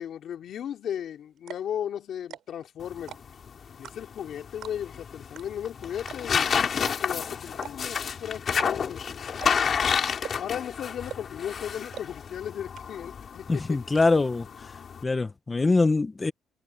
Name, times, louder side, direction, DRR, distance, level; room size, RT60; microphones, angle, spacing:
voice 1, 0.0-3.1 3.8-9.0 9.5-9.7 10.4-13.8, left 9 dB, 60° left, 3.1 m, -36 dB
sound 1, 0.9-1.0 1.4-1.7 2.2-2.6 3.0-3.4 3.8-4.2 4.6-5.0 5.3-5.4 5.7-5.8 6.1-6.4 6.8-6.9 7.5-8.0 8.5-9.0 9.4-9.7 10.2-10.6 11.1-11.4 11.9-12.0 12.4-12.5 12.7-13.2 13.4-14.1, right 11 dB, 65° right, 7.7 m, -41 dB
sound 2, 2.8-15.0, left 7 dB, 45° left, 2.7 m, -30 dB
voice 2, 13.5-14.5 15.0-16.3, left 3 dB, 20° left, 1.3 m, -23 dB
cardioid pair, 125°, 0 cm